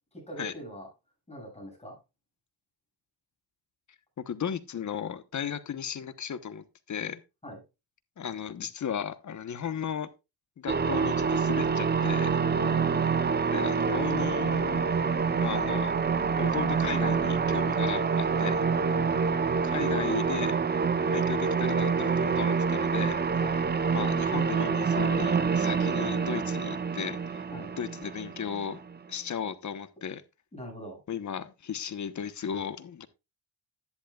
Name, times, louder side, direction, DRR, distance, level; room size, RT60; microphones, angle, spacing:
voice 1, 0.1-0.9 1.3-2.0 7.4-7.6 12.5-13.2 18.9-19.1 23.4-23.6 27.5-27.7 30.5-31.0, equal, 15° left, 7.5 m, -42 dB
voice 2, 4.2-7.2 8.2-10.1 10.6-12.4 13.5-14.8 15.4-15.9 16.4-18.6 19.6-20.6 21.1-23.4 23.9-27.4 27.8-28.8 29.1-30.2 31.1-33.1, left 8 dB, 45° left, 1.1 m, -35 dB
sound 1, 10.7-29.0, right 5 dB, 25° right, 0.7 m, -27 dB
11.0 x 10.5 x 2.4 m
cardioid pair, 90°, 41 cm